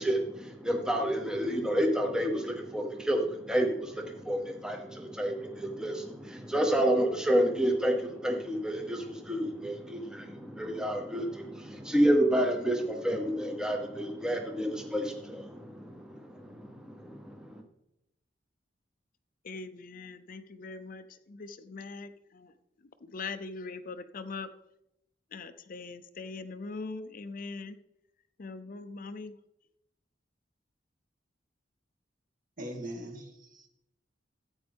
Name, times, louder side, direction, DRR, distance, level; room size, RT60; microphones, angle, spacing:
voice 1, 0.0-17.6, equal, 5° right, 2 dB, 0.9 m, -30 dB
voice 2, 19.4-22.5 23.0-24.5 25.3-27.8 28.4-29.4, left 4 dB, 50° left, 11 dB, 0.6 m, -41 dB
voice 3, 32.6-33.7, right 1 dB, 45° right, 2 dB, 2.2 m, -41 dB
14.0 x 8.9 x 3.5 m, 0.86 s
head